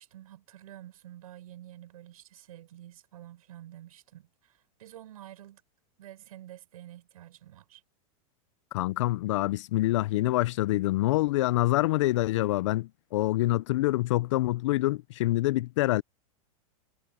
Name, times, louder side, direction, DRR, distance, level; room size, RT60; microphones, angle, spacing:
voice 1, 0.0-5.6 6.0-7.8, right 12 dB, 80° right, 7.2 m, -49 dB
voice 2, 8.7-16.0, left 17 dB, 55° left, 0.4 m, -26 dB
supercardioid pair, 170°, 18 cm